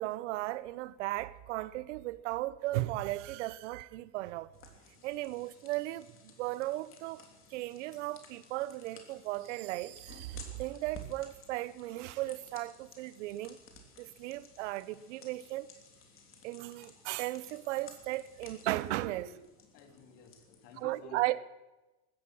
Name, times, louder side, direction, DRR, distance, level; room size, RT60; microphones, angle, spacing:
voice 1, 0.0-4.5 5.0-7.3 7.5-13.6 14.0-15.7 16.4-19.3 20.8-21.4, right 17 dB, 80° right, 0.9 m, -36 dB
sound 1, 4.5-20.8, left 5 dB, 35° left, 3.1 m, -56 dB
voice 2, 19.0-19.4 19.7-21.4, left 6 dB, 70° left, 3.2 m, -53 dB
16.5 x 13.5 x 6.2 m
supercardioid pair, 110°, 36 cm